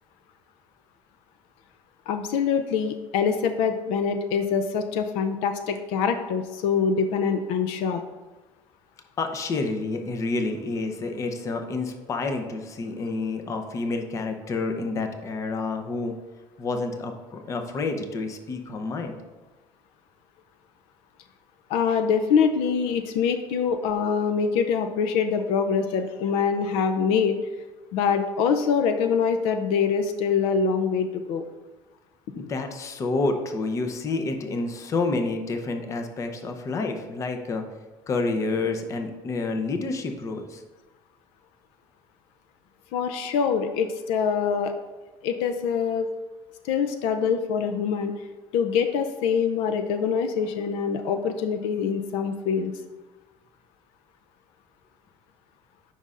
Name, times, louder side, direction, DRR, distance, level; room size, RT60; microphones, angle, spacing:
voice 1, 2.1-8.0 21.7-27.4 27.9-31.4 32.4-32.5 42.9-44.7 45.2-46.1 46.6-48.3 48.5-52.7, left 6 dB, 80° left, 8 dB, 0.5 m, -24 dB
voice 2, 9.2-16.1 16.6-19.2 32.3-37.6 38.1-40.6, left 3 dB, 30° left, 5 dB, 0.7 m, -29 dB
9.1 x 5.4 x 2.5 m, 1.2 s
cardioid pair, 135°, 10 cm